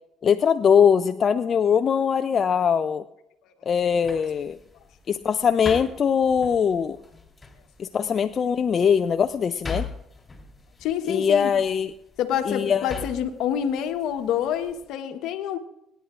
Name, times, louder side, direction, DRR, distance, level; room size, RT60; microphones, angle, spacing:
voice 1, 0.2-3.0 3.7-4.6 5.1-7.0 7.8-9.9 11.1-11.9 12.5-13.0, left 7 dB, 45° left, 9 dB, 0.4 m, -21 dB
sound 1, 3.7-14.9, left 4 dB, 25° left, 3.3 m, -42 dB
voice 2, 10.8-11.5 12.2-15.6, left 9 dB, 75° left, 7 dB, 1.2 m, -27 dB
25.5 x 10.0 x 2.5 m, 0.81 s
supercardioid pair, 70°, 0 cm